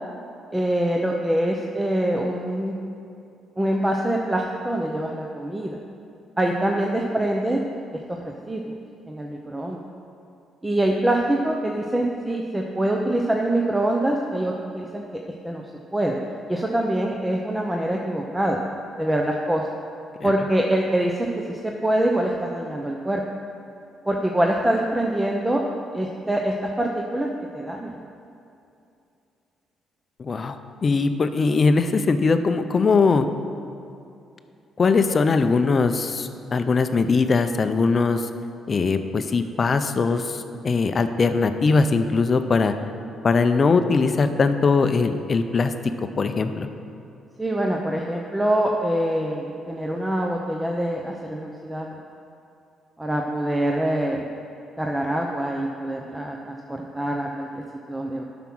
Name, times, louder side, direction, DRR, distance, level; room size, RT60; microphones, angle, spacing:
voice 1, 0.5-2.8 3.6-5.8 6.4-7.6 8.1-8.7 9.1-9.8 10.6-15.6 15.9-16.2 16.5-18.6 19.0-19.7 20.2-23.2 24.1-25.6 25.9-27.3 27.5-28.0 47.4-51.9 53.0-54.2 54.8-57.6 57.9-58.2, right 1 dB, 10° right, 1 dB, 0.8 m, -24 dB
voice 2, 30.2-33.3 34.8-38.3 38.7-42.7 43.2-45.7 46.2-46.7, left 4 dB, 40° left, 9 dB, 0.6 m, -21 dB
9.1 x 6.0 x 6.2 m, 2.6 s
cardioid pair, 90°, 0 cm